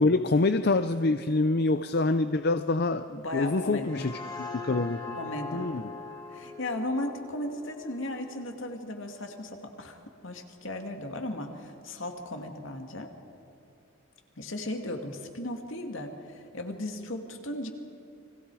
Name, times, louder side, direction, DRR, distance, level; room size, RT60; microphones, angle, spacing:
voice 1, 0.0-5.2 5.5-5.8, left 3 dB, 50° left, 10 dB, 0.6 m, -26 dB
voice 2, 3.1-4.1 5.2-5.7 6.3-13.1 14.4-17.7, left 1 dB, 70° left, 4 dB, 2.3 m, -36 dB
sound 1, 3.8-9.0, left 3 dB, 20° left, 2.4 m, -42 dB
30.0 x 22.0 x 4.9 m, 2.8 s
head